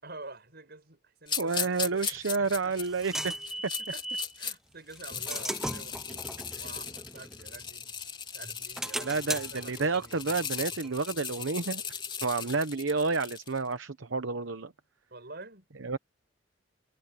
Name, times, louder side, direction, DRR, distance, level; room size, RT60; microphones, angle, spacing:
voice 1, 0.0-2.8 3.1-4.0 4.4-7.9 8.3-10.2 12.3-12.6 15.1-15.7, right 3 dB, 55° right, 6.1 m, -48 dB
sound 1, 1.3-4.5 4.9-13.6, left 7 dB, 25° left, 3.6 m, -38 dB
voice 2, 1.4-3.3 9.0-11.8 12.2-14.7 15.8-16.0, right 4 dB, 70° right, 0.9 m, -30 dB
sound 2, 2.2-4.4 4.9-8.0 8.4-11.9, right 1 dB, ahead, 0.6 m, -39 dB
head